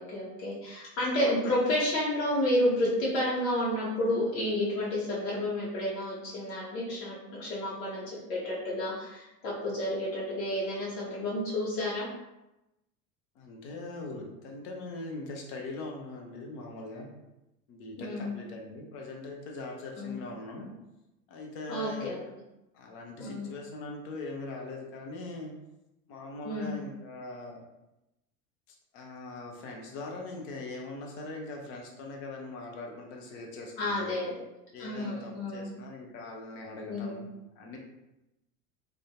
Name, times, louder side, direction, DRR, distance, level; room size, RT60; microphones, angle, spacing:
voice 1, 0.0-12.1 18.0-18.4 20.0-20.2 21.7-22.2 23.2-23.5 26.4-26.8 33.8-34.3 34.8-35.7 36.9-37.2, left 1 dB, 60° left, -6 dB, 0.9 m, -30 dB
voice 2, 13.4-17.1 17.7-20.7 21.3-22.2 22.7-25.5 26.1-27.6 28.7-34.1 34.7-37.3 37.6-37.8, left 2 dB, 30° left, 0 dB, 0.3 m, -41 dB
2.5 x 2.2 x 2.3 m, 0.93 s
figure-of-eight pair, 75°, 48 cm